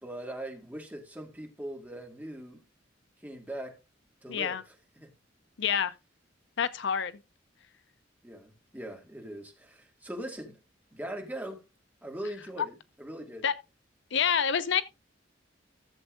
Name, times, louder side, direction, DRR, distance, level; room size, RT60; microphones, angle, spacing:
voice 1, 0.0-2.6 3.2-3.7 4.2-5.1 8.2-10.6 10.9-11.6 12.0-13.5, right 1 dB, 10° right, 2.0 m, -41 dB
voice 2, 4.3-4.6 5.6-5.9 6.6-7.1 13.4-13.5 14.1-14.8, left 7 dB, 65° left, 0.6 m, -27 dB
15.0 x 7.2 x 2.5 m
head